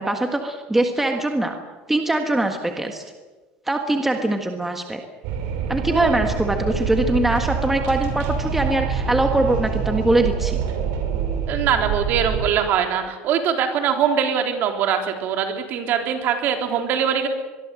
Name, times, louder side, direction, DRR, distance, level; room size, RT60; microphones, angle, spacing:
voice 1, 0.0-1.5 1.9-3.0 3.7-5.0 5.7-10.6, right 2 dB, 5° right, 4 dB, 1.6 m, -22 dB
Wind, 5.2-12.5, right 6 dB, 75° right, 5.7 m, -26 dB
voice 2, 5.9-6.2 11.5-17.3, right 8 dB, 45° right, 4 dB, 3.6 m, -22 dB
24.0 x 22.0 x 7.7 m, 1.3 s
cardioid pair, 165°, 4 cm